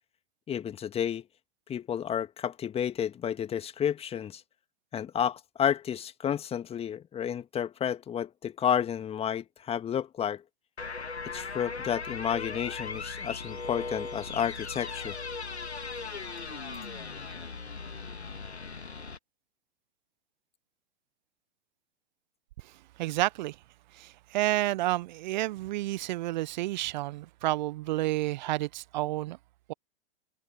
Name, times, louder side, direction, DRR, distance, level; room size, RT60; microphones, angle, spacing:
voice 1, 0.5-1.2 1.7-4.4 4.9-10.4 11.3-15.2, left 9 dB, 20° left, 2.0 m, -31 dB
sound 1, 10.8-19.2, left 4 dB, 85° left, 2.0 m, -38 dB
voice 2, 23.0-23.5 24.0-29.4, right 17 dB, 45° right, 0.9 m, -30 dB
figure-of-eight pair, 105°, 32 cm